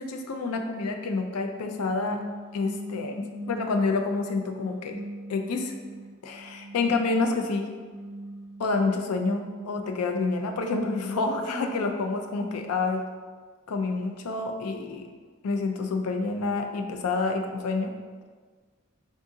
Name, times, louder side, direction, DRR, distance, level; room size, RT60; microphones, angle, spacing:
voice 1, 0.0-2.2 2.5-5.0 5.3-5.7 6.2-7.7 8.6-13.0 13.7-15.1 15.4-17.9, left 3 dB, 85° left, 4 dB, 0.4 m, -28 dB
sound 1, 1.8-3.9 4.5-7.2 7.7-10.0, right 1 dB, 65° right, 0.4 m, -41 dB
3.6 x 2.7 x 3.7 m, 1.5 s
head